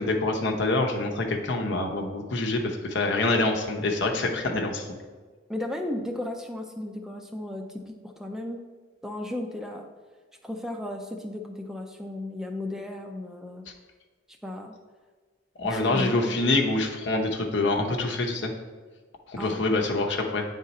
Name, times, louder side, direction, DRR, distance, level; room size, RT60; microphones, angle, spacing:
voice 1, 0.0-4.9 15.6-18.5 19.3-20.4, left 2 dB, 70° left, 2 dB, 0.9 m, -26 dB
voice 2, 5.5-8.7 9.0-9.9 10.4-13.6 14.4-14.8 15.7-16.5 19.4-19.7, left 1 dB, 5° right, 3 dB, 0.4 m, -35 dB
8.5 x 3.7 x 4.2 m, 1.4 s
head